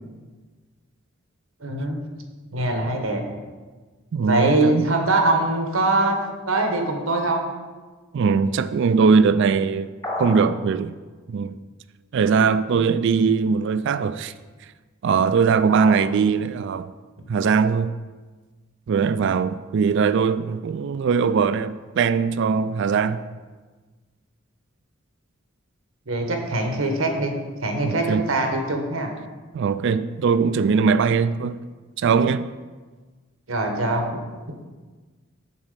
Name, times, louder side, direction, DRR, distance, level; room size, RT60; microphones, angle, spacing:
voice 1, 1.6-2.0 2.5-3.2 4.2-6.2 6.5-7.4 15.7-16.0 26.1-27.3 27.6-29.1 33.5-34.2 34.5-34.6, right 2 dB, 90° right, 1.2 m, -23 dB
voice 2, 4.1-4.9 8.1-9.9 10.2-11.0 11.3-11.6 12.1-14.3 15.0-16.9 17.3-17.9 18.9-23.2 27.8-28.3 29.5-31.6 32.0-32.5, right 5 dB, 60° right, 0.3 m, -20 dB
sound 1, 10.0-10.6, left 1 dB, 20° left, 1.2 m, -29 dB
7.2 x 4.1 x 6.6 m
head